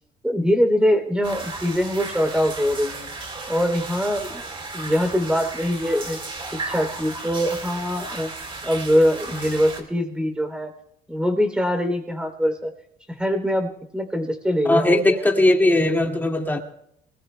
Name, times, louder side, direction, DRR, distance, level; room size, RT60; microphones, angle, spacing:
voice 1, 0.2-3.1 3.5-4.4 4.7-6.2 6.5-8.3 8.6-10.7 11.1-12.7 13.1-15.2, equal, 5° right, 5 dB, 3.1 m, -23 dB
sound 1, 1.2-9.8, right 3 dB, 30° right, 3.3 m, -34 dB
voice 2, 14.6-16.6, left 1 dB, 10° left, 1 dB, 2.1 m, -19 dB
25.5 x 20.0 x 2.3 m, 0.75 s
cardioid pair, 110°, 17 cm